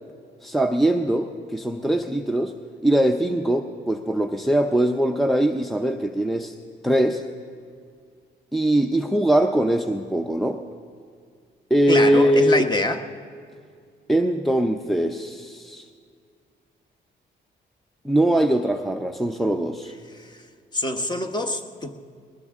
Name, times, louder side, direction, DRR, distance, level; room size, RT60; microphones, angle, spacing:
voice 1, 0.4-2.5 2.8-6.5 6.8-7.2 8.5-10.6 11.7-12.7 14.1-15.8 18.0-19.9, right 1 dB, ahead, 5 dB, 0.6 m, -21 dB
voice 2, 11.9-13.0 20.1-20.4 20.7-21.9, left 2 dB, 20° left, 6 dB, 1.1 m, -25 dB
20.5 x 19.5 x 3.6 m, 2.1 s
cardioid pair, 90°, 20 cm